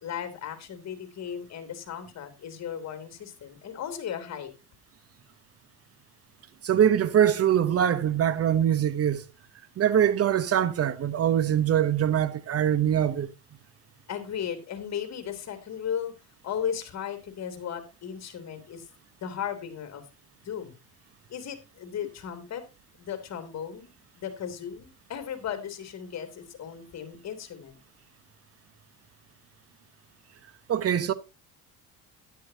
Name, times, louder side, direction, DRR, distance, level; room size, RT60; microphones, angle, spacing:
voice 1, 0.0-4.5 14.1-16.1 16.4-18.8 19.2-20.0 20.4-20.7 21.3-22.6 23.1-27.8, left 8 dB, 45° left, 3.1 m, -36 dB
voice 2, 6.6-9.2 9.8-13.3 30.7-31.1, right 9 dB, 40° right, 1.2 m, -23 dB
13.0 x 11.0 x 2.9 m
supercardioid pair, 95°, 35 cm